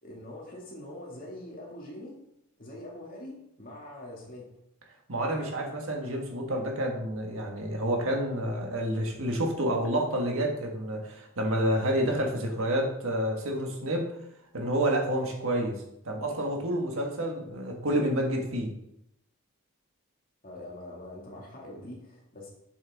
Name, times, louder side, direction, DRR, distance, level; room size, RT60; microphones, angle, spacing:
voice 1, 0.0-2.2 2.6-4.5 20.4-22.5, left 1 dB, 40° left, -2 dB, 2.1 m, -43 dB
voice 2, 5.1-14.1 14.5-15.8 16.0-18.7, right 1 dB, 70° right, 1 dB, 1.5 m, -29 dB
7.4 x 6.6 x 3.5 m, 0.80 s
head